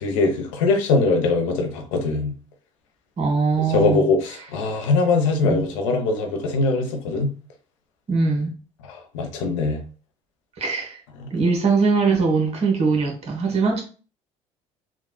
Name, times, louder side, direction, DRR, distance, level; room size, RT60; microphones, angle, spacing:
voice 1, 0.0-2.3 3.7-7.3 8.9-9.8 11.2-11.3, left 3 dB, 85° left, 0.7 m, -22 dB
voice 2, 3.2-4.1 5.4-5.7 8.1-8.5 10.6-11.0 11.3-13.8, right 4 dB, 40° right, 1.3 m, -21 dB
3.5 x 2.4 x 2.2 m
supercardioid pair, 80°, 16 cm